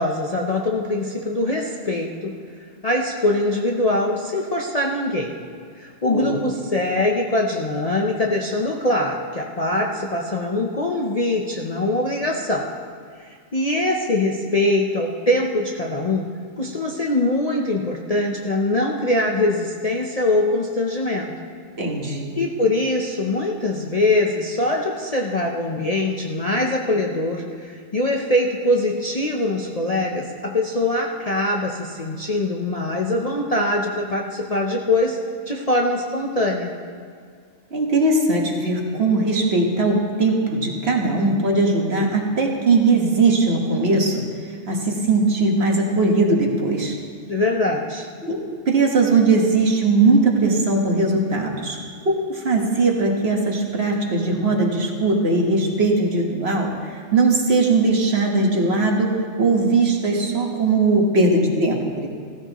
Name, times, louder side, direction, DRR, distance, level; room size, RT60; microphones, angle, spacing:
voice 1, 0.0-2.3 2.8-5.3 5.8-12.7 13.2-16.3 16.6-21.4 22.4-35.2 35.5-36.7 47.2-48.1, left 1 dB, 35° left, -1 dB, 0.7 m, -23 dB
voice 2, 21.8-22.3 37.7-46.9 48.2-51.8 52.0-62.1, right 3 dB, 50° right, 0 dB, 1.6 m, -20 dB
15.5 x 14.0 x 3.0 m, 2.1 s
omnidirectional pair, 1.4 m